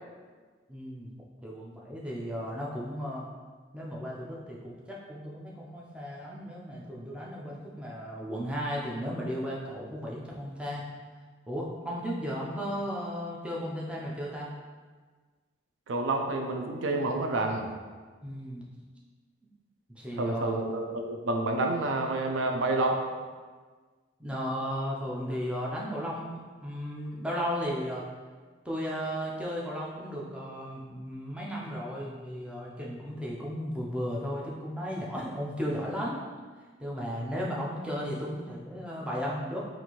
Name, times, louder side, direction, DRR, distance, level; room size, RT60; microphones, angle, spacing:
voice 1, 0.7-1.1 1.4-3.3 3.7-10.8 11.5-14.5 18.2-18.7 20.0-20.5 24.2-28.0 28.6-36.2 36.8-39.6, equal, 5° right, -4 dB, 0.4 m, -35 dB
voice 2, 15.9-17.6 20.1-23.0, right 2 dB, 75° right, 2 dB, 0.4 m, -29 dB
4.3 x 2.6 x 2.9 m, 1.5 s
head